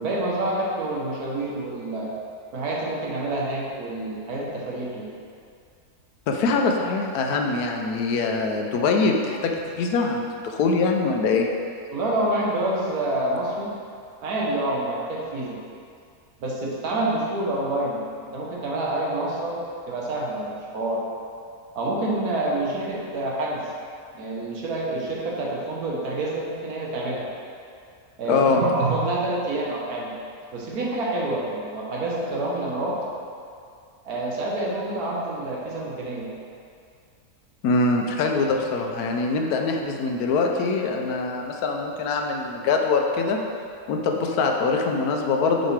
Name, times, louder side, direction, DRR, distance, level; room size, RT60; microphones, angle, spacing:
voice 1, 0.0-2.1 2.5-5.1 11.9-13.7 14.2-15.6 16.4-19.6 19.9-21.0 21.7-23.7 24.1-27.3 28.2-30.1 30.5-33.0 34.0-36.3, right 2 dB, 75° right, -4 dB, 1.5 m, -27 dB
voice 2, 6.3-11.5 28.3-28.6 37.6-43.4 43.9-45.7, left 4 dB, 80° left, 2 dB, 1.1 m, -23 dB
6.4 x 5.2 x 3.3 m, 2.4 s
omnidirectional pair, 1.7 m